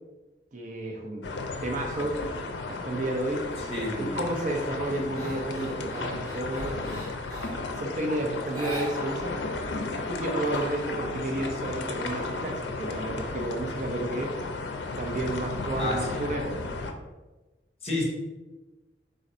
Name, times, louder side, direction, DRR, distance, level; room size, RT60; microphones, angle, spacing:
voice 1, 0.5-1.3 1.6-2.2 2.7-7.1 7.7-9.4 10.1-14.3 15.0-16.6, right 1 dB, 45° right, 1 dB, 0.5 m, -32 dB
sound 1, 1.2-16.9, left 3 dB, 75° left, 0.5 m, -34 dB
sound 2, 3.5-3.9 4.3-7.7 8.5-9.4 9.7-9.8 10.2-11.1, right 1 dB, 25° right, 1.4 m, -41 dB
voice 2, 3.6-4.2 11.3-11.5 15.8-16.2 17.8-18.0, left 1 dB, 35° left, -2 dB, 1.0 m, -31 dB
3.8 x 2.5 x 4.1 m, 1.1 s
head